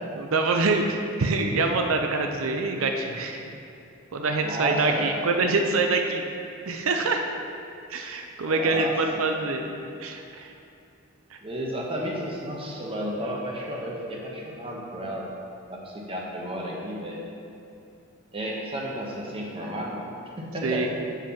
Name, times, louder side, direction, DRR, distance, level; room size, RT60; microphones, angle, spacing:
voice 1, 0.2-3.4 4.1-6.2 6.7-7.2 7.9-10.5 20.6-20.9, right 3 dB, 90° right, 4 dB, 0.5 m, -25 dB
voice 2, 4.4-5.2 8.4-9.4 11.4-15.4 15.7-17.2 18.3-20.1 20.4-20.9, equal, 25° right, -2 dB, 1.2 m, -32 dB
7.5 x 5.2 x 5.7 m, 2.7 s
head